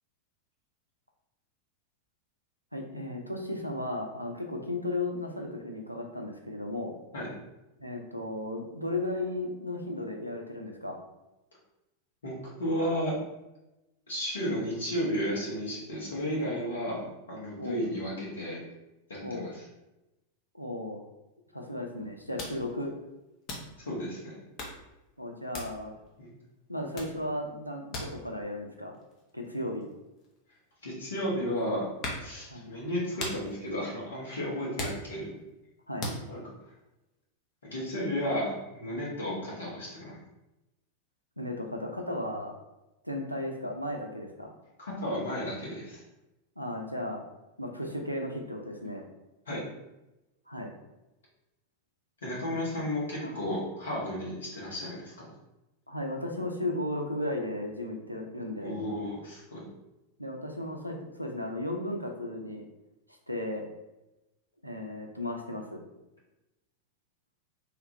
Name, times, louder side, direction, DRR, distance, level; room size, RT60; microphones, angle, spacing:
voice 1, 2.7-6.9 7.8-11.0 17.6-17.8 19.2-19.5 20.5-21.0 21.5-22.9 25.2-25.9 26.7-29.0 29.3-29.9 32.5-32.7 35.9-36.1 41.4-42.5 43.0-44.5 46.6-47.2 47.6-49.0 50.5-50.7 53.2-53.3 55.9-58.8 60.2-62.6 63.3-63.7 64.6-65.8, left 1 dB, 90° right, 2 dB, 0.4 m, -35 dB
voice 2, 12.2-13.1 14.1-17.0 17.3-18.6 19.1-19.6 23.8-24.4 26.2-26.3 30.8-31.9 32.2-35.2 36.3-36.4 37.6-40.2 44.8-46.0 49.5-49.6 52.2-55.3 58.6-59.6, equal, 70° left, -5 dB, 1.2 m, -33 dB
sound 1, 21.6-21.7 22.0-22.1 22.4-23.1 23.4-24.0 24.4-24.9 25.5-26.1 26.5-26.7 26.9-31.1 31.6-32.4 32.8-35.5 36.0-36.3, left 1 dB, 35° left, 0.7 m, -39 dB
3.2 x 2.4 x 2.9 m, 0.97 s
figure-of-eight pair, 90°, 0 cm